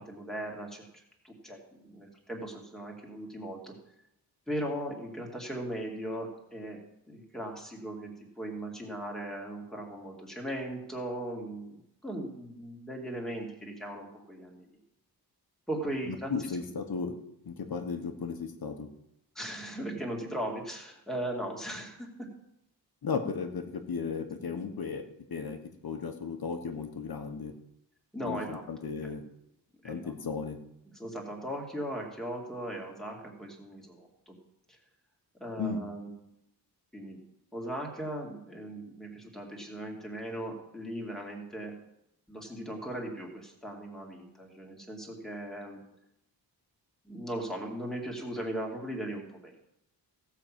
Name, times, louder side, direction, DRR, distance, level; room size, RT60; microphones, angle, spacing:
voice 1, 0.0-3.7 4.5-6.8 7.1-8.1 8.4-14.7 15.7-16.3 19.3-22.1 28.1-28.6 29.8-30.1 30.9-34.3 34.7-34.8 35.4-36.1 36.9-37.2 37.5-41.7 42.3-45.8 47.0-49.6, right 1 dB, ahead, -1 dB, 2.4 m, -38 dB
voice 2, 16.0-17.1 17.4-18.9 23.0-25.0 25.3-27.5 28.2-29.2 29.8-30.6 35.6-35.8, left 5 dB, 60° left, 6 dB, 1.3 m, -35 dB
16.0 x 5.9 x 7.5 m, 0.81 s
wide cardioid pair, 160°, 41 cm